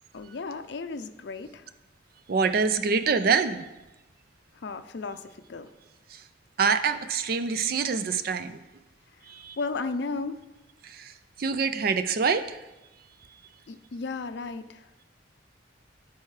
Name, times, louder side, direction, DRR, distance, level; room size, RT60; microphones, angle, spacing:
voice 1, 0.1-1.6 4.6-5.7 9.6-10.4 13.7-14.8, left 3 dB, 60° left, 9 dB, 0.5 m, -34 dB
voice 2, 2.3-3.6 6.6-8.6 9.3-9.5 11.0-11.1 11.4-12.6, right 5 dB, 50° right, 10 dB, 0.4 m, -25 dB
13.5 x 4.6 x 3.2 m, 1.0 s
head